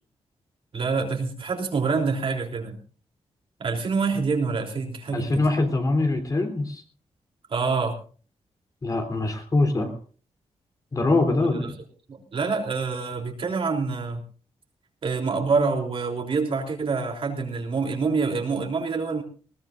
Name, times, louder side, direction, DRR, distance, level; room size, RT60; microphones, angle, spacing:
voice 1, 0.7-2.8 3.6-5.4 7.5-8.0 11.6-11.7 12.1-14.2 15.0-19.2, right 4 dB, 55° right, 1 dB, 3.4 m, -26 dB
voice 2, 5.1-6.8 8.8-9.9 10.9-11.7, left 2 dB, 30° left, 5 dB, 3.3 m, -23 dB
20.5 x 18.5 x 2.6 m, 0.40 s
wide cardioid pair, 140°, 11 cm